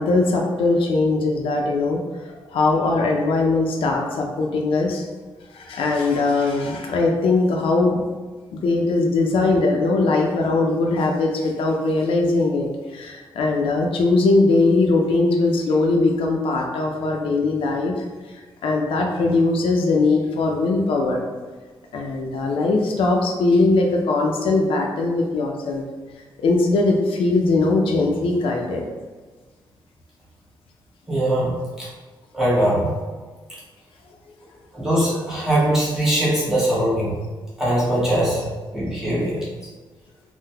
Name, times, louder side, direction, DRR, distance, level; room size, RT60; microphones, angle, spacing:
voice 1, 0.0-2.0 2.3-5.1 5.5-8.0 8.5-21.3 21.9-25.8 26.4-28.9, left 3 dB, 80° left, 1 dB, 0.4 m, -20 dB
voice 2, 31.1-31.9 32.3-32.9 34.7-37.1 37.6-38.5 38.7-39.4, right 1 dB, 5° right, -9 dB, 1.0 m, -21 dB
3.8 x 2.1 x 2.7 m, 1.4 s
wide cardioid pair, 160°, 9 cm